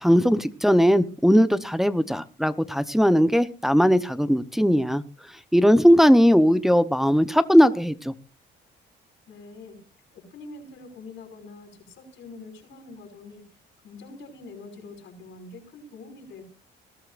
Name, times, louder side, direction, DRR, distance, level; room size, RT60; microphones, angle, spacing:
voice 1, 0.0-5.0 5.5-8.1, equal, ahead, 12 dB, 0.8 m, -19 dB
voice 2, 9.3-9.8 10.1-13.4 13.8-16.4, left 3 dB, 80° left, 1 dB, 5.5 m, -44 dB
20.0 x 12.5 x 2.5 m, 0.35 s
cardioid pair, 90°, 20 cm